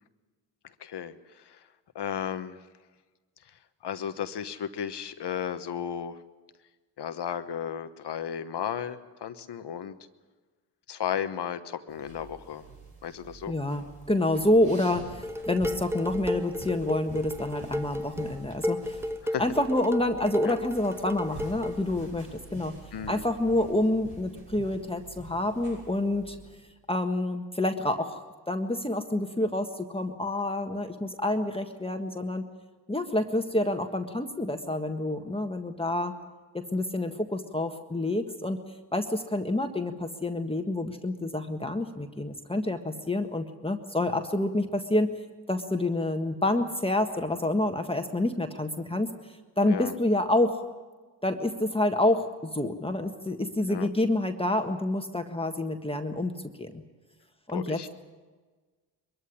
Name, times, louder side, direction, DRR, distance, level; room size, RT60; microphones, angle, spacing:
voice 1, 0.8-1.7 1.9-2.6 3.8-6.2 7.0-10.0 10.9-12.6 13.0-13.6 19.2-19.4 20.4-20.6 22.9-23.3 49.6-50.0 53.7-53.9 57.5-57.9, left 8 dB, 70° left, 11 dB, 1.2 m, -34 dB
sound 1, 11.9-26.6, right 3 dB, 75° right, 6.4 m, -47 dB
voice 2, 13.5-19.0 19.4-22.8 23.1-26.4 26.9-32.5 32.9-36.1 36.5-38.6 38.9-45.1 45.5-49.1 49.6-50.6 51.2-56.3 56.6-56.8 57.5-57.9, left 1 dB, 15° left, 5 dB, 1.6 m, -28 dB
Dishes pots and pans, 15.2-21.8, left 1 dB, 5° right, 0.7 m, -33 dB
22.5 x 14.5 x 9.9 m, 1.4 s
cardioid pair, 60°, 41 cm